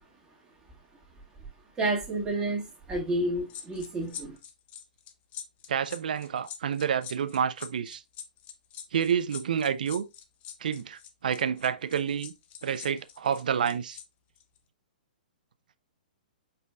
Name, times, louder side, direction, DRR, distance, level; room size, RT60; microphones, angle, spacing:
voice 1, 1.8-4.4, right 2 dB, 15° right, 2.0 m, -30 dB
sound 1, 3.5-14.0 14.4-14.6, left 9 dB, 30° left, 0.6 m, -44 dB
voice 2, 5.7-8.0 8.9-10.0 10.6-12.3 12.6-14.0, right 8 dB, 70° right, 0.5 m, -29 dB
5.1 x 4.3 x 2.3 m
hypercardioid pair, 120°, 5 cm